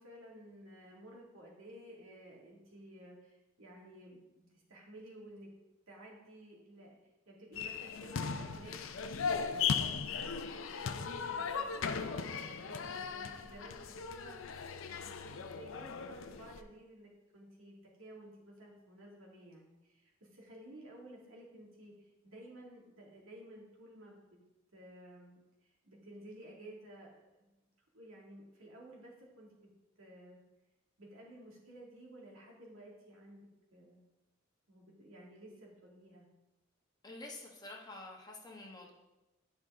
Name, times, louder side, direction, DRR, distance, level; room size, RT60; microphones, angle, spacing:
voice 1, 0.0-5.5 5.9-7.0 7.3-8.8 9.1-14.4 14.9-24.4 24.7-27.5 27.9-29.5 30.0-30.4 31.0-34.0 34.7-36.3, right 1 dB, 90° right, -3 dB, 2.3 m, -54 dB
sound 1, 7.5-16.6, left 6 dB, 70° left, 0.5 m, -37 dB
voice 2, 37.0-38.9, left 2 dB, 20° left, -1 dB, 1.2 m, -48 dB
10.5 x 5.6 x 3.7 m, 1.0 s
head